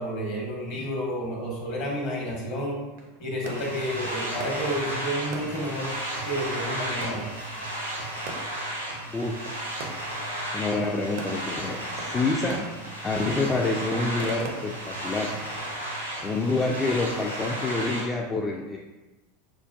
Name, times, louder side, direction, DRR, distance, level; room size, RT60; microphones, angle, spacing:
voice 1, 0.0-2.8 3.2-5.9 6.2-7.2, equal, 50° left, -2 dB, 1.1 m, -30 dB
sound 1, 2.5-18.2, right 3 dB, 55° right, 0.5 m, -45 dB
sound 2, 3.4-18.0, right 1 dB, 85° right, 0.7 m, -33 dB
voice 2, 9.1-9.5 10.5-12.7 13.0-15.3 16.2-18.8, left 3 dB, 20° left, -1 dB, 0.3 m, -27 dB
4.9 x 2.2 x 2.5 m, 1.1 s
figure-of-eight pair, 80°, 0 cm